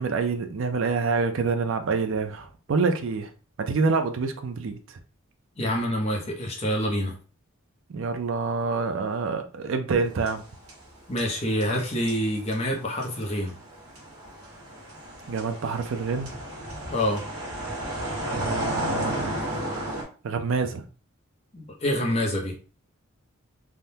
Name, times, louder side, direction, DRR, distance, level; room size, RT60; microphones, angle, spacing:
voice 1, 0.0-3.3 3.6-4.8 7.9-10.4 15.3-16.3 18.3-19.4 20.2-20.8, right 4 dB, 65° right, 7 dB, 0.4 m, -27 dB
voice 2, 5.6-7.1 11.1-13.5 16.9-17.2 21.5-22.5, equal, 30° left, 0 dB, 0.7 m, -26 dB
sound 1, 10.0-10.9 11.2-20.0, right 1 dB, 85° right, 1.2 m, -33 dB
3.5 x 2.1 x 2.7 m, 0.35 s
head